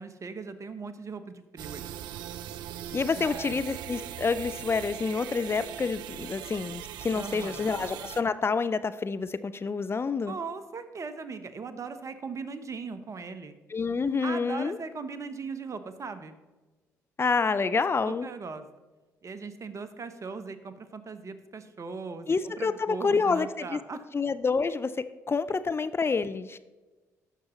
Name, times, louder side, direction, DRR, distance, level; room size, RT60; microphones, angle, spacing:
voice 1, 0.0-1.9 3.2-3.7 7.1-7.7 10.3-13.6 14.2-16.4 18.1-18.7 19.2-24.0, right 4 dB, 40° right, 11 dB, 1.0 m, -39 dB
sound 1, 1.6-8.2, right 11 dB, 70° right, 0.4 m, -40 dB
voice 2, 2.9-10.4 13.7-14.8 17.2-18.3 22.3-23.8 24.1-24.9 25.3-26.6, left 4 dB, 30° left, 14 dB, 0.6 m, -28 dB
16.0 x 6.0 x 3.1 m, 1.2 s
hypercardioid pair, 50°, 8 cm